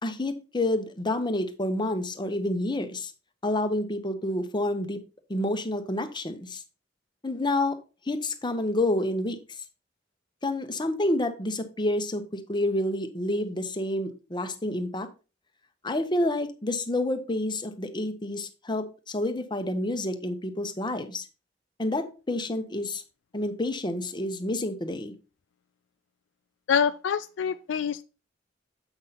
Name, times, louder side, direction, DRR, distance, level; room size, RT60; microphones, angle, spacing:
voice 1, 0.0-3.1 3.4-5.0 5.3-6.6 7.2-7.8 8.1-9.4 10.4-15.1 15.8-21.2 21.8-23.0 23.3-25.1, left 1 dB, 25° left, 0.9 m, -29 dB
voice 2, 26.7-28.0, left 7 dB, 70° left, 0.4 m, -26 dB
8.0 x 5.6 x 4.1 m
head